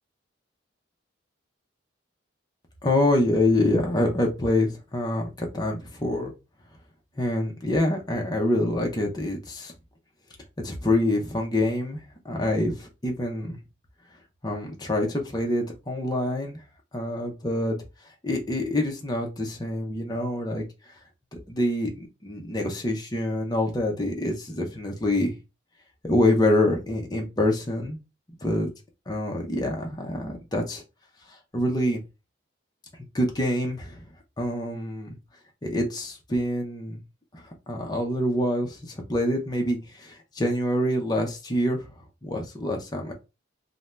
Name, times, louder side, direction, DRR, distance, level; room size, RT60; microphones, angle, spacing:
voice 1, 2.8-6.3 7.2-9.7 10.6-13.6 14.4-16.6 16.9-17.8 18.2-20.6 21.3-25.3 26.0-28.0 28.4-28.7 29.1-30.8 31.3-32.0 33.1-34.0 34.4-35.2 35.6-37.0 37.3-41.9 42.2-43.1, left 1 dB, 20° left, 0.6 m, -26 dB
2.6 x 2.1 x 3.2 m
head